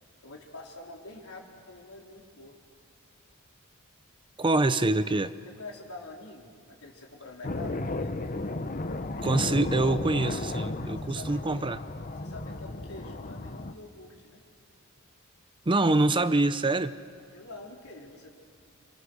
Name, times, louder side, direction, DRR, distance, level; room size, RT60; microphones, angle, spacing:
voice 1, 0.2-2.6 5.5-8.2 11.0-11.7 12.2-14.4 17.3-18.4, left 2 dB, 85° left, -1 dB, 4.2 m, -46 dB
voice 2, 4.4-5.3 9.2-11.8 15.7-16.9, right 2 dB, 25° right, 12 dB, 0.6 m, -25 dB
sound 1, 7.4-13.7, left 2 dB, 40° left, 1.0 m, -34 dB
28.5 x 27.0 x 6.5 m, 2.2 s
head